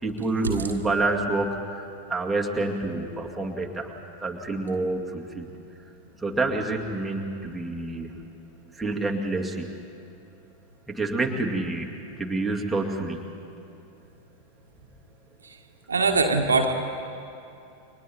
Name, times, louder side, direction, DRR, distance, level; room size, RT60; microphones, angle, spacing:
voice 1, 0.0-3.9 4.2-5.5 6.2-8.1 8.8-9.7 10.9-13.2, right 2 dB, 5° right, -1 dB, 2.2 m, -28 dB
voice 2, 15.9-16.7, right 3 dB, 75° right, 3 dB, 1.7 m, -21 dB
30.0 x 24.0 x 4.3 m, 2.7 s
figure-of-eight pair, 90°, 0 cm